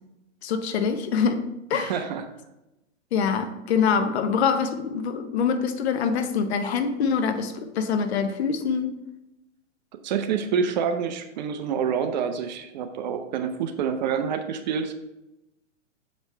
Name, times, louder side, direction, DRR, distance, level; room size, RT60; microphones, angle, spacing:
voice 1, 0.4-1.4 1.7-1.9 3.1-8.9, left 6 dB, 55° left, 8 dB, 0.9 m, -24 dB
voice 2, 1.7-2.3 10.0-14.9, right 7 dB, 35° right, 7 dB, 0.5 m, -27 dB
7.0 x 5.2 x 3.2 m, 0.95 s
hypercardioid pair, 140°, 38 cm